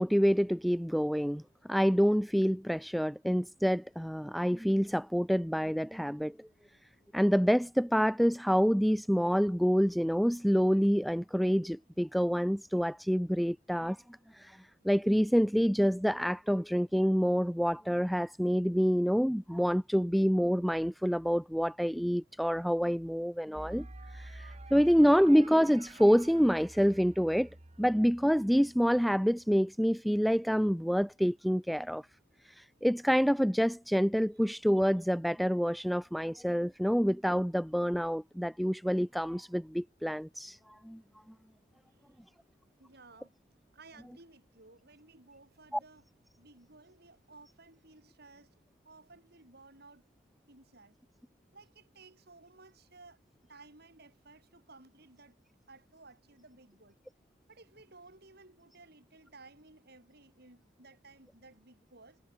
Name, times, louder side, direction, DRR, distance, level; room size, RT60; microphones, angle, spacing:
voice 1, 0.0-1.4 1.7-6.5 7.1-14.0 14.3-23.9 24.1-27.5 27.8-32.0 32.4-41.0 45.7-45.8, equal, ahead, 0.4 m, -27 dB
sound 1, 23.5-29.5, right 2 dB, 35° right, 1.4 m, -50 dB
voice 2, 41.9-42.2 42.8-43.4 43.7-48.6 48.8-50.1 50.5-51.0 51.5-53.2 53.4-55.4 55.7-57.0 57.5-62.2, right 3 dB, 55° right, 7.2 m, -57 dB
head